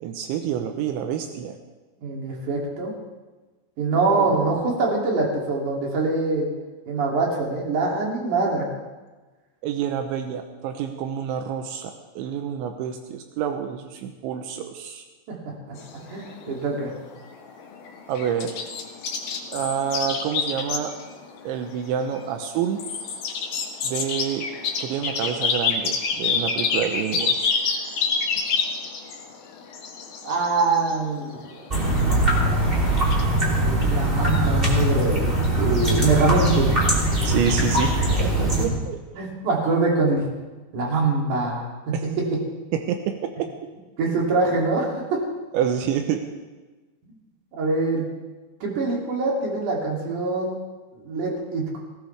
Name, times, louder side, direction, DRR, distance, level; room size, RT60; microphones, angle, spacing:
voice 1, 0.0-1.6 4.1-4.3 9.6-15.0 18.1-18.6 19.5-20.9 21.4-22.8 23.8-24.5 24.8-27.5 37.2-39.0 41.9-42.0 42.7-43.5 45.5-46.2, right 8 dB, 85° right, 5 dB, 3.2 m, -28 dB
voice 2, 2.0-2.9 3.8-6.5 6.9-8.7 15.3-15.4 15.7-15.8 16.1-16.9 30.2-31.7 33.6-36.7 39.2-40.3 40.7-42.4 44.0-45.2 47.5-48.1 48.6-50.5 51.0-51.8, right 3 dB, 45° right, -2 dB, 3.9 m, -24 dB
sound 1, 15.8-33.2, left 5 dB, 60° left, 3.2 m, -28 dB
sound 2, 31.7-38.7, right 1 dB, 15° right, 2.2 m, -21 dB
18.5 x 18.0 x 3.4 m, 1.2 s
omnidirectional pair, 5.4 m